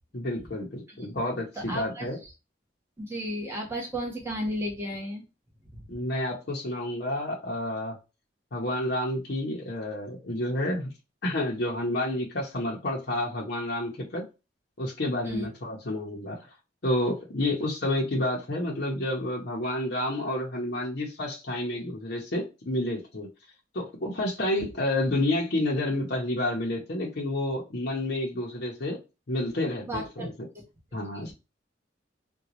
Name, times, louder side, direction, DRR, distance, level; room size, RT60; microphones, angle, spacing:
voice 1, 0.1-2.2 5.9-8.0 8.5-10.9 11.2-14.2 14.8-16.4 16.8-23.3 23.7-29.0 29.3-30.3 30.9-31.3, left 1 dB, 55° left, 0.7 m, -29 dB
voice 2, 1.6-2.3 3.0-5.2 5.7-5.8 15.2-15.5 24.6-24.7 29.9-30.3 30.5-30.6 31.1-31.3, equal, 15° right, 1.0 m, -34 dB
3.8 x 2.2 x 2.9 m
head